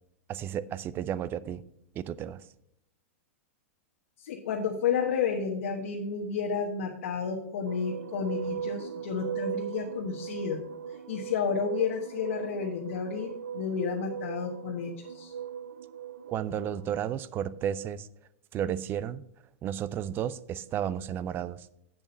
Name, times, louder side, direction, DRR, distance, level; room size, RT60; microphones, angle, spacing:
voice 1, 0.3-1.6 2.0-2.4 16.3-18.1 18.5-19.2 19.6-21.7, right 10 dB, 30° right, 0.5 m, -33 dB
voice 2, 4.2-10.6 11.1-15.3, left 6 dB, 70° left, 1.2 m, -31 dB
sound 1, 7.7-17.0, right 9 dB, 90° right, 0.6 m, -39 dB
8.5 x 7.0 x 5.3 m
hypercardioid pair, 125°, 7 cm